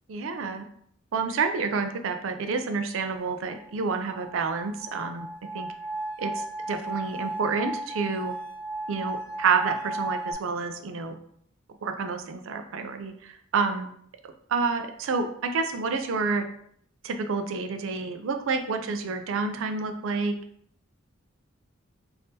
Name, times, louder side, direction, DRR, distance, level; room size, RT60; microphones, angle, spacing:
voice 1, 0.1-0.6 1.1-5.3 5.5-5.7 6.2-8.3 8.9-11.2 11.8-13.9 14.5-16.5 17.0-20.3, right 4 dB, 70° right, 7 dB, 0.4 m, -29 dB
sound 1, 3.2-10.3, right 2 dB, 25° left, 0.6 m, -35 dB
3.5 x 2.6 x 2.7 m, 0.65 s
head